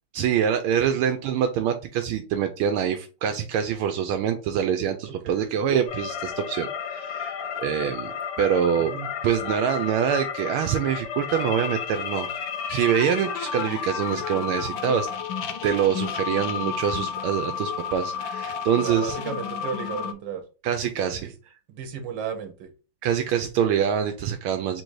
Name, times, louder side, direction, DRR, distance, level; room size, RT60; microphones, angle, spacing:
voice 1, 0.1-8.9 9.2-15.1 15.6-19.2 20.6-21.3 23.0-24.8, right 8 dB, 80° right, 6 dB, 1.4 m, -25 dB
voice 2, 5.1-5.6 8.8-9.1 18.8-20.4 21.1-21.3 21.7-22.7, right 7 dB, 65° right, 6 dB, 1.4 m, -34 dB
sound 1, 5.9-20.1, left 7 dB, 70° left, 1.2 m, -32 dB
3.9 x 2.6 x 4.6 m, 0.34 s
omnidirectional pair, 2.4 m